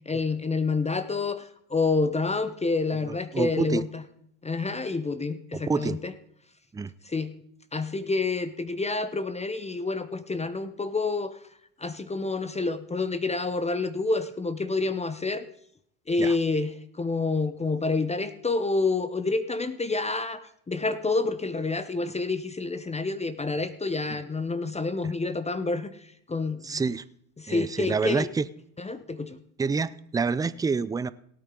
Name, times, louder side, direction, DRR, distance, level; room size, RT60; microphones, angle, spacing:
voice 1, 0.1-4.0 4.4-6.1 7.1-7.3 7.7-11.4 11.8-15.4 16.1-26.7 27.4-28.3 28.8-29.4, left 3 dB, 15° left, 13 dB, 0.8 m, -28 dB
voice 2, 3.1-3.8 5.5-6.0 6.7-6.9 16.2-16.4 25.0-25.1 26.6-27.0 27.5-28.5 29.6-31.1, right 5 dB, 10° right, 17 dB, 0.4 m, -28 dB
17.5 x 9.1 x 3.8 m, 0.69 s
hypercardioid pair, 80°, 43 cm